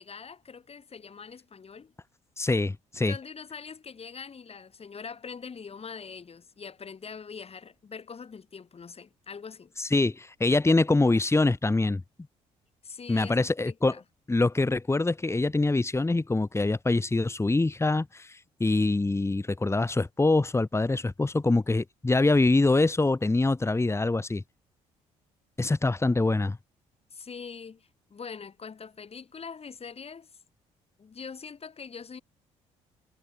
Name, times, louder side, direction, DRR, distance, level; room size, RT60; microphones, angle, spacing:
voice 1, 0.0-1.9 3.1-9.7 12.8-14.0 27.1-30.3 31.0-32.2, left 5 dB, 40° left, 5.6 m, -43 dB
voice 2, 2.4-3.2 9.8-12.0 13.1-13.9 14.3-24.4 25.6-26.6, left 2 dB, 15° left, 2.0 m, -24 dB
hypercardioid pair, 55°, 15 cm